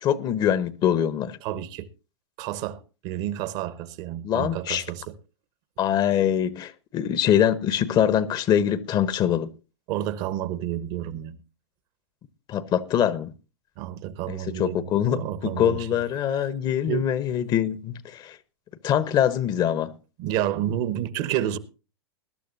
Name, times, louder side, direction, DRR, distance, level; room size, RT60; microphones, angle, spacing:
voice 1, 0.0-1.4 4.2-4.8 5.8-9.5 12.5-13.3 14.3-18.4 18.8-19.9, left 10 dB, 30° left, 0.9 m, -24 dB
voice 2, 1.4-1.9 2.4-5.1 9.9-11.4 13.8-15.9 16.3-16.5 16.9-17.1 20.2-21.6, right 12 dB, 45° right, 1.1 m, -30 dB
20.5 x 12.0 x 2.6 m
hypercardioid pair, 100°, 14 cm